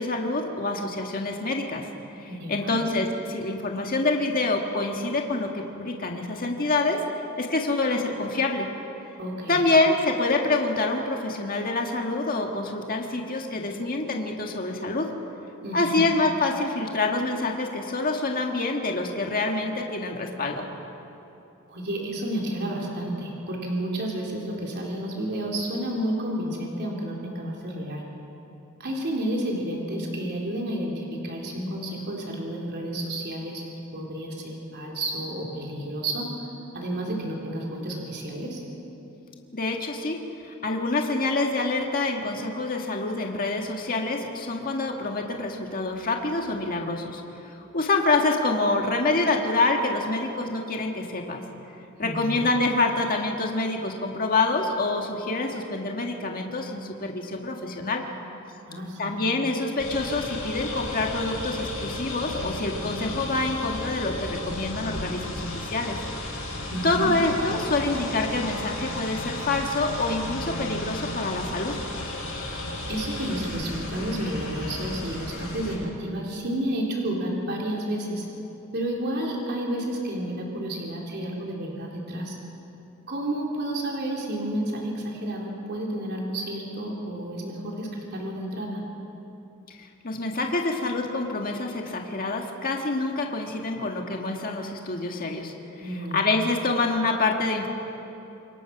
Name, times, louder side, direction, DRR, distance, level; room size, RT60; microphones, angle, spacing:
voice 1, 0.0-1.9 2.2-7.0 7.4-8.7 9.5-15.1 15.7-20.7 39.5-40.2 40.4-51.4 52.0-58.0 59.0-66.0 66.8-71.8 89.8-97.7, left 2 dB, 45° left, 2 dB, 1.7 m, -26 dB
voice 2, 2.3-2.8 9.2-9.6 15.6-16.0 21.7-28.0 28.8-33.6 33.9-36.3 36.7-38.6 52.0-52.4 58.7-59.2 66.7-67.1 72.9-78.2 78.7-82.4 83.1-88.8 95.8-96.2, right 1 dB, 55° right, -2 dB, 3.7 m, -31 dB
sound 1, 59.8-75.7, left 1 dB, 70° left, 7.8 m, -34 dB
27.0 x 22.5 x 5.9 m, 3.0 s
head